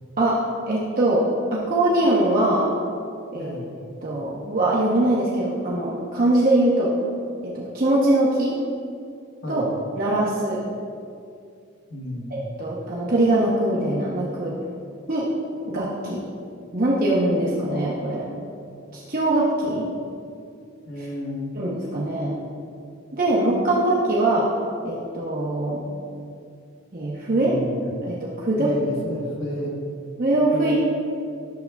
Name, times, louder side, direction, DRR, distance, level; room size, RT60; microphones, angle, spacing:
voice 1, 0.7-1.2 1.5-2.7 3.3-3.6 4.0-6.9 7.5-8.6 9.5-9.7 10.0-10.6 12.3-14.5 15.1-15.3 15.7-16.2 16.7-18.3 18.9-19.9 21.6-22.3 23.1-24.5 24.8-25.8 26.9-27.5 28.0-28.7 30.2-30.8, right 1 dB, 45° right, -5 dB, 0.9 m, -22 dB
voice 2, 9.4-9.7 11.9-12.4 20.9-21.5 27.3-27.8 28.6-29.8 30.5-30.8, left 1 dB, 85° left, -2 dB, 1.3 m, -31 dB
11.5 x 6.8 x 2.3 m, 2.4 s
head